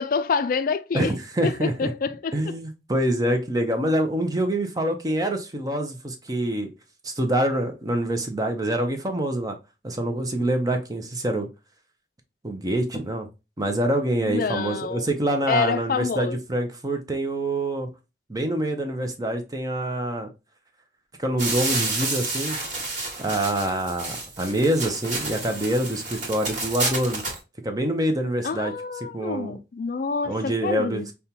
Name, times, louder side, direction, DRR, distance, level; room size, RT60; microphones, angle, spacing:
voice 1, 0.0-1.1 1.4-2.4 14.3-15.1 15.5-16.4 28.4-31.1, left 5 dB, 55° left, 0.4 m, -27 dB
voice 2, 0.9-1.9 2.3-6.7 7.0-9.6 9.8-11.5 12.4-13.3 13.6-17.9 18.3-20.3 21.2-22.6 23.2-27.2 27.6-28.7 29.1-29.5 30.2-31.0, right 1 dB, 20° right, 0.6 m, -25 dB
sound 1, 21.4-27.4, right 3 dB, 45° right, 1.5 m, -30 dB
5.3 x 2.2 x 2.8 m
head